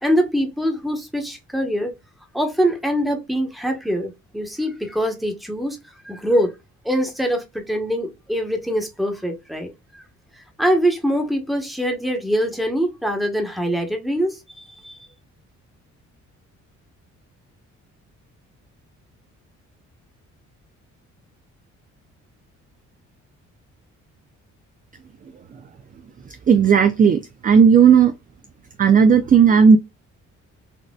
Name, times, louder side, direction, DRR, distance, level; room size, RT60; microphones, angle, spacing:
voice 1, 0.0-1.9 2.3-5.8 6.0-6.5 6.8-9.7 10.6-15.0, equal, ahead, 1.1 m, -23 dB
voice 2, 26.5-28.1 28.8-29.8, right 6 dB, 30° right, 0.4 m, -13 dB
4.2 x 2.4 x 2.3 m
cardioid pair, 90°, 30 cm